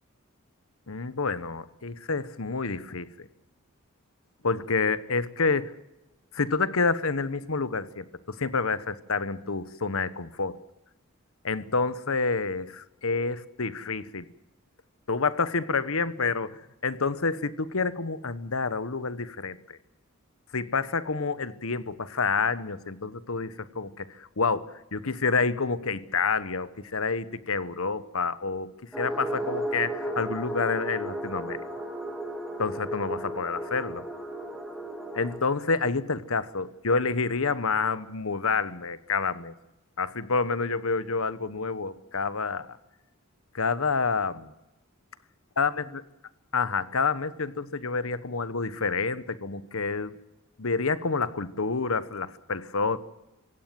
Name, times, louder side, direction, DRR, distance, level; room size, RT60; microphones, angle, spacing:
voice 1, 0.9-3.3 4.4-5.7 6.3-10.6 11.4-14.3 15.1-19.8 20.5-28.7 29.0-31.6 32.6-34.0 35.1-39.5 40.0-42.8 43.5-44.5 45.6-45.7 46.5-50.1 50.6-53.0, left 4 dB, 80° left, 1.1 m, -28 dB
sound 1, 28.9-35.4, right 1 dB, ahead, 3.2 m, -34 dB
26.0 x 16.5 x 7.6 m
head